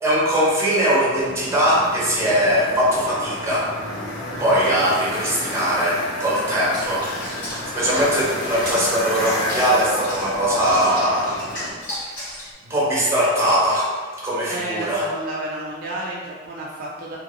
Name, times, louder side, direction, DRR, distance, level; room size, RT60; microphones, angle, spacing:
voice 1, 0.0-3.7 4.4-7.1 7.4-11.3 12.2-12.3 12.7-13.9 14.2-15.1, equal, 15° right, -7 dB, 0.8 m, -20 dB
sound 1, 1.1-11.7, left 1 dB, 80° left, 0.8 m, -31 dB
Water / Bathtub (filling or washing), 6.7-12.5, left 1 dB, 65° left, 1.3 m, -35 dB
voice 2, 14.5-17.2, right 1 dB, 50° right, -4 dB, 0.3 m, -31 dB
2.7 x 2.6 x 2.7 m, 1.4 s
head